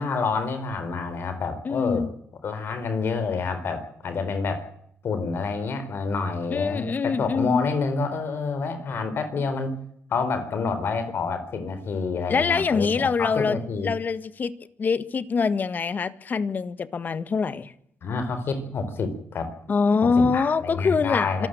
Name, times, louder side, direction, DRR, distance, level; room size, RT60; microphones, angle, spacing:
voice 1, 0.0-2.1 2.4-4.7 5.0-9.8 10.1-13.9 18.0-19.5 20.0-21.5, left 4 dB, 60° left, 10 dB, 4.3 m, -28 dB
voice 2, 1.6-2.1 6.5-7.7 12.3-13.6 13.8-14.5 14.8-17.7 19.7-21.5, left 5 dB, 40° left, 13 dB, 1.7 m, -24 dB
26.0 x 13.5 x 9.2 m, 0.70 s
cardioid pair, 85°, 4 cm